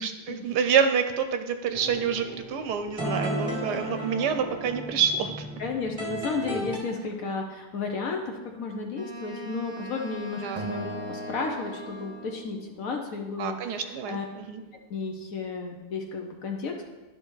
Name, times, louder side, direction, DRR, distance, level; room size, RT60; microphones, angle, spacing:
voice 1, 0.0-5.5 10.4-10.6 13.4-14.6, right 7 dB, 75° right, 8 dB, 1.1 m, -27 dB
sound 1, 1.7-6.8, equal, 5° right, 1.8 m, -34 dB
voice 2, 5.6-13.8 14.1-14.2 14.9-16.8, left 4 dB, 60° left, 2 dB, 1.0 m, -33 dB
Wind instrument woodwind instrument, 8.9-12.5, equal, 45° right, 0.5 m, -42 dB
Acoustic guitar, 10.6-12.9, right 2 dB, 30° right, 0.9 m, -38 dB
11.5 x 5.4 x 3.1 m, 1.2 s
omnidirectional pair, 1.9 m